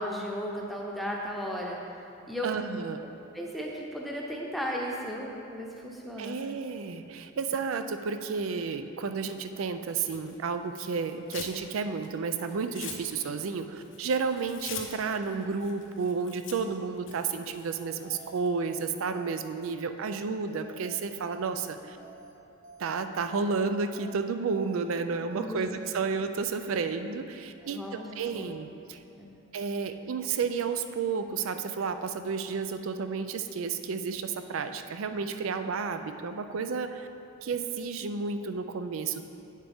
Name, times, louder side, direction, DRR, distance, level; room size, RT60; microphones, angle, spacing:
voice 1, 0.0-1.8 2.3-2.5 3.3-6.4 25.3-25.8 27.6-28.1 28.3-28.6 29.2-29.3, equal, ahead, -2 dB, 0.8 m, -35 dB
voice 2, 2.4-3.0 6.2-22.0 22.8-29.0 29.5-37.1 37.4-39.2, right 5 dB, 80° right, 8 dB, 0.4 m, -32 dB
Tearing, 10.0-11.6 11.9-18.5, left 7 dB, 65° left, 0.8 m, -45 dB
sound 1, 17.8-18.3 18.6-18.8 19.1-19.7 20.0-20.2 20.5-21.0 21.3-21.5 21.8-22.3 22.6-22.8 23.1-23.7 24.0-24.2 24.5-25.0 25.3-25.5 25.8-26.1, right 3 dB, 55° right, 0.8 m, -50 dB
8.8 x 7.3 x 3.5 m, 2.7 s
head